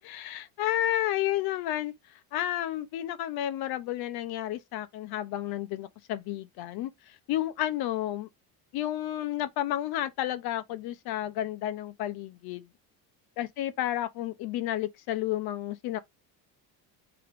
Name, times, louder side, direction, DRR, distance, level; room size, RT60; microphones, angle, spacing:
voice 1, 0.0-1.9 2.3-6.9 7.3-8.3 8.7-12.6 13.4-16.0, left 13 dB, 55° left, 0.7 m, -31 dB
4.8 x 2.9 x 3.3 m
cardioid pair, 145°, 45 cm